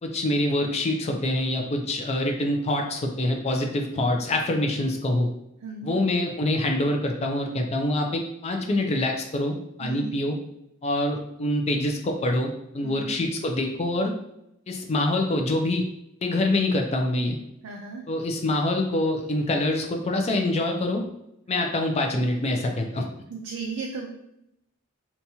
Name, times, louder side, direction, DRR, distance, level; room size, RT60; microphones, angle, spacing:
voice 1, 0.0-5.3 5.8-10.4 10.8-14.1 14.7-15.8 16.2-17.4 18.1-21.0 21.5-23.0, left 1 dB, 30° left, 3 dB, 0.4 m, -25 dB
voice 2, 5.6-6.0 9.8-10.2 12.8-13.2 17.6-18.0 21.5-21.7 23.3-24.1, right 4 dB, 80° right, -1 dB, 0.4 m, -35 dB
2.9 x 2.2 x 2.7 m, 0.80 s
head